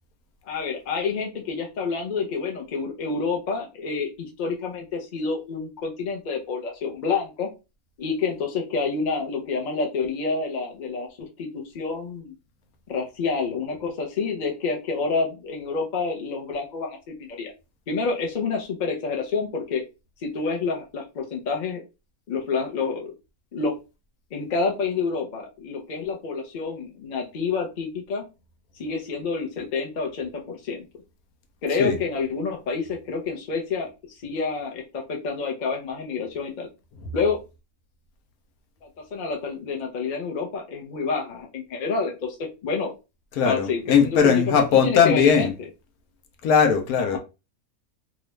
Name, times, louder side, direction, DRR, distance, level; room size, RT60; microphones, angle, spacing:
voice 1, 0.5-7.5 8.0-12.3 12.9-17.5 17.9-19.8 20.2-21.8 22.3-23.1 23.5-23.8 24.3-28.2 28.8-30.9 31.6-36.7 37.1-37.4 39.1-42.9 43.4-45.5 47.0-47.2, left 4 dB, 40° left, 0.7 m, -28 dB
voice 2, 43.4-45.5 46.4-47.2, left 7 dB, 80° left, 1.1 m, -19 dB
2.9 x 2.5 x 3.1 m
omnidirectional pair, 1.6 m